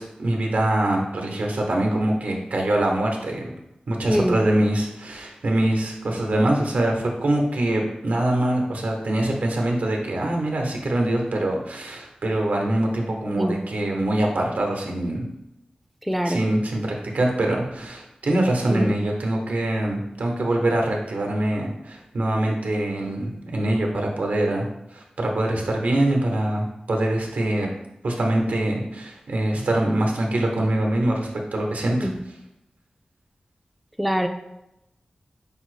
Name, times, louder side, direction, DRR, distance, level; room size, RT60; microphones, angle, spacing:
voice 1, 0.0-3.5 3.9-15.3 16.2-27.7 28.0-32.1, right 1 dB, 80° right, 1 dB, 0.9 m, -24 dB
voice 2, 16.1-16.4 18.7-18.9 32.0-32.1 34.0-34.3, equal, ahead, 5 dB, 0.3 m, -22 dB
5.1 x 2.0 x 4.8 m, 0.88 s
wide cardioid pair, 90°, 3 cm